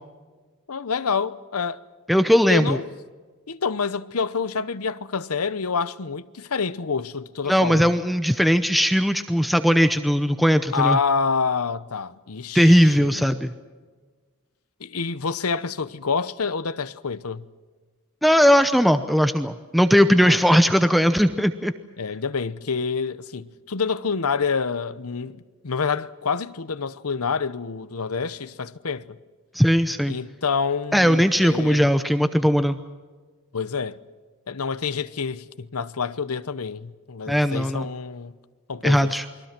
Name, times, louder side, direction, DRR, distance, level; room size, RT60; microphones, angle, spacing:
voice 1, 0.7-1.8 2.5-2.8 3.5-7.9 10.7-13.2 14.8-17.4 20.2-20.6 22.0-29.2 30.1-31.9 33.5-34.0 34.5-38.3 38.7-39.1, left 5 dB, 80° left, 0.9 m, -27 dB
voice 2, 2.1-2.8 7.5-11.0 12.5-13.5 18.2-21.7 29.5-30.2 30.9-32.8 37.3-37.9 38.8-39.2, equal, ahead, 0.7 m, -18 dB
28.5 x 22.5 x 6.0 m
head